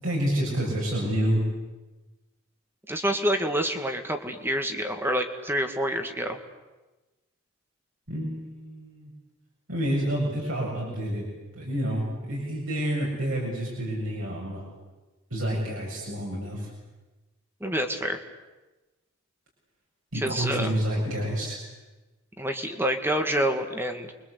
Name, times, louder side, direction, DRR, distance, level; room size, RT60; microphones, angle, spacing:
voice 1, 0.0-1.4 8.1-9.1 9.7-11.3 11.5-14.6 15.3-16.7 20.1-21.6, right 1 dB, 65° right, -3 dB, 7.6 m, -28 dB
voice 2, 2.9-6.4 17.6-18.2 20.1-20.7 22.4-24.1, equal, 10° right, 5 dB, 2.0 m, -27 dB
29.5 x 23.5 x 8.4 m, 1.1 s
head